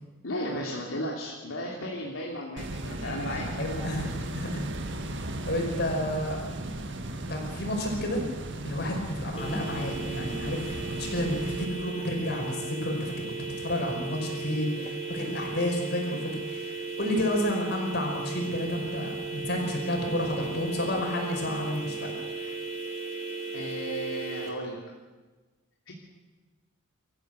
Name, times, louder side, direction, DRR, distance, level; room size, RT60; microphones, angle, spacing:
voice 1, 0.2-3.5 23.5-24.8 25.9-26.0, equal, 80° left, -2 dB, 3.0 m, -34 dB
sound 1, 2.6-11.7, right 1 dB, 60° right, 1.8 m, -36 dB
voice 2, 3.6-4.7 5.5-6.7 7.1-8.2 8.6-13.2 13.6-22.1 22.5-22.6, left 1 dB, 50° left, 2 dB, 5.4 m, -31 dB
sound 2, 9.4-24.5, right 3 dB, 30° left, 3.1 m, -36 dB
24.5 x 14.5 x 7.9 m, 1.2 s
head